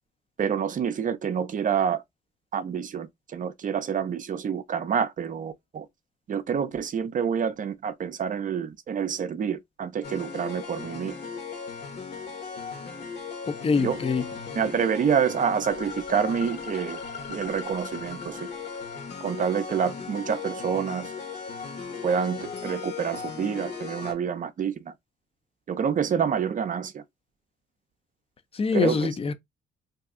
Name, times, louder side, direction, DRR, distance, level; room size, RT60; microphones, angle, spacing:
voice 1, 0.4-2.0 2.5-5.9 6.3-11.1 13.8-14.0 14.6-17.0 17.3-18.5 19.2-21.1 22.0-24.8 25.7-27.0 28.7-29.1, right 7 dB, 40° right, 0.5 m, -27 dB
sound 1, 10.0-24.1, left 5 dB, 55° left, 1.2 m, -37 dB
voice 2, 13.5-14.3 28.5-29.3, left 5 dB, 30° left, 0.5 m, -24 dB
2.7 x 2.3 x 3.5 m
cardioid pair, 90°, 20 cm